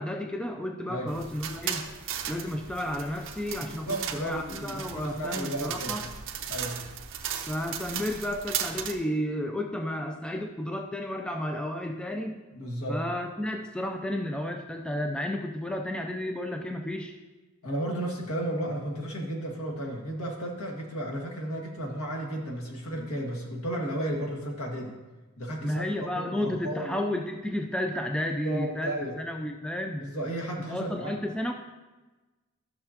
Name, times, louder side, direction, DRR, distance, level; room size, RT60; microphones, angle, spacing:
voice 1, 0.0-1.9 2.3-6.1 7.5-12.4 12.9-17.2 25.6-30.0 30.7-31.5, left 1 dB, 5° left, 3 dB, 0.4 m, -32 dB
sound 1, 1.1-8.9, right 8 dB, 60° right, 0.8 m, -36 dB
voice 2, 3.6-6.0 6.5-6.9 12.5-13.0 17.6-25.0 25.4-27.0 28.4-29.2 30.0-31.1, right 1 dB, 70° left, 0 dB, 1.7 m, -33 dB
13.0 x 6.6 x 2.8 m, 1.2 s
head